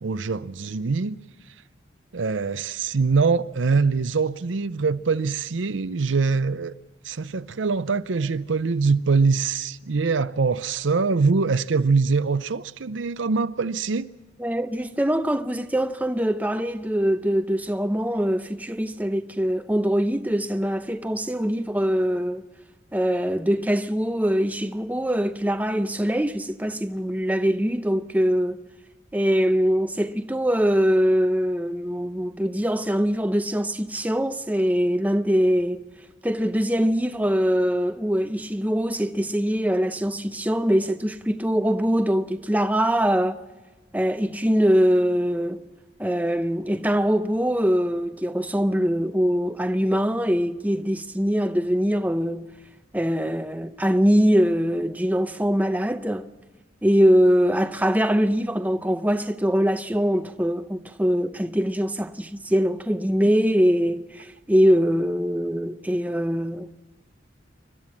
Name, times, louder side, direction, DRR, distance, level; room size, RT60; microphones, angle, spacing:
voice 1, 0.0-1.2 2.1-6.7 7.1-14.1, right 4 dB, 85° right, 0.6 m, -23 dB
voice 2, 14.4-22.4 22.9-28.6 29.1-35.8 36.2-43.4 43.9-45.6 46.0-52.5 52.9-56.3 56.8-66.7, equal, 10° right, 0.7 m, -23 dB
29.0 x 12.5 x 7.4 m
head